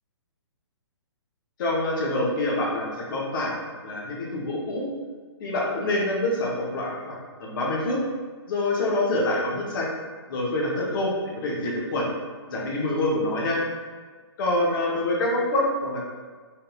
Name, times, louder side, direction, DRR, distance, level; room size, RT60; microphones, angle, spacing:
voice 1, 1.6-3.5 3.8-4.8 5.4-8.0 8.5-9.9 10.3-12.1 12.5-13.6 14.4-16.1, left 1 dB, 45° left, -3 dB, 0.8 m, -26 dB
3.5 x 2.6 x 2.3 m, 1.5 s
figure-of-eight pair, 130°, 15 cm